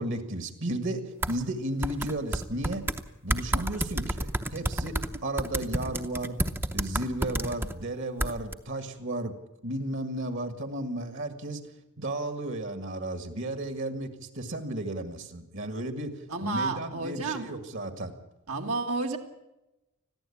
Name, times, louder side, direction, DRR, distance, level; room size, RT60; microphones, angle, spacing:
voice 1, 0.0-2.9 3.2-6.4 6.7-9.3 9.6-18.2, right 1 dB, 55° right, 8 dB, 1.9 m, -34 dB
sound 1, 1.2-1.3 1.8-3.0 3.3-7.7 8.2-8.5, right 1 dB, 10° right, 0.7 m, -29 dB
voice 2, 16.3-17.5 18.5-19.2, right 3 dB, 75° right, 3 dB, 2.1 m, -31 dB
21.0 x 15.0 x 8.6 m, 0.96 s
head